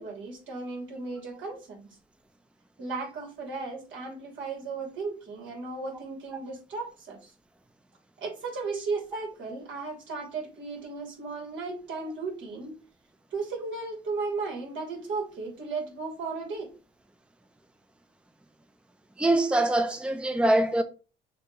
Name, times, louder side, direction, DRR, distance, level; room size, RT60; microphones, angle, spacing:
voice 1, 0.0-2.0 2.8-7.3 8.2-12.7 13.3-16.7, right 4 dB, 75° right, 2.9 m, -35 dB
voice 2, 19.2-20.8, right 1 dB, 5° right, 0.6 m, -23 dB
6.6 x 2.9 x 5.5 m
cardioid pair, 90°, 20 cm